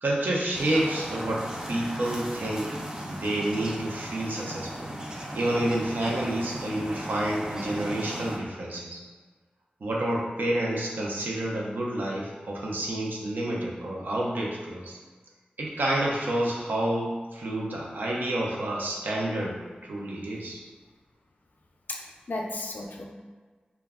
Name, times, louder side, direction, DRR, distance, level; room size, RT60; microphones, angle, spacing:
voice 1, 0.0-2.7 3.1-9.0 9.8-15.0 15.6-19.6 19.8-20.6, right 1 dB, 85° right, -3 dB, 0.5 m, -29 dB
sound 1, 0.5-8.4, right 1 dB, 25° right, 0.4 m, -37 dB
voice 2, 21.9-23.1, left 2 dB, 65° left, 1 dB, 0.4 m, -34 dB
2.2 x 2.0 x 3.5 m, 1.4 s
wide cardioid pair, 80°, 3 cm